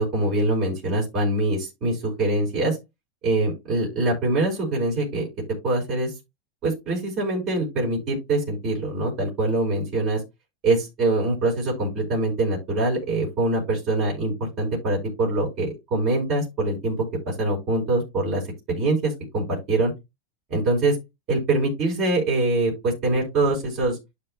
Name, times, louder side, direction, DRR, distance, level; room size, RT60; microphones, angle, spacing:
voice 1, 0.0-2.8 3.2-5.3 5.6-6.1 6.6-10.2 10.6-17.0 17.2-18.4 18.7-19.9 20.5-21.0 21.3-24.0, right 2 dB, 40° right, -3 dB, 4.7 m, -24 dB
12.0 x 4.6 x 2.2 m, 0.22 s
supercardioid pair, 140°, 0 cm